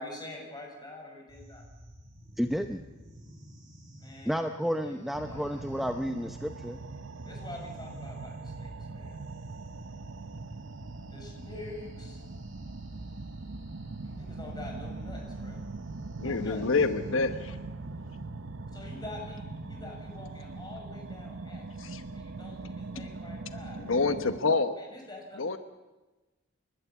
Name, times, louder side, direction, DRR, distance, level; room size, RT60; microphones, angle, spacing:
voice 1, 0.0-1.6 4.0-4.4 4.8-5.0 5.2-5.8 7.2-9.2 11.1-12.2 14.0-15.6 16.2-16.7 18.7-21.6 22.1-23.8 24.8-25.4, left 2 dB, 20° left, 0 dB, 6.1 m, -45 dB
sound 1, 1.3-19.8, equal, 40° right, 7.4 m, -51 dB
voice 2, 2.4-2.8 4.3-6.8, equal, ahead, 6 dB, 0.7 m, -31 dB
sound 2, 5.1-24.4, right 3 dB, 90° right, 0.9 m, -41 dB
voice 3, 16.2-17.6 21.8-22.0 23.8-24.8 25.4-25.6, left 3 dB, 85° left, 10 dB, 1.1 m, -27 dB
29.5 x 12.5 x 8.3 m, 1.2 s
head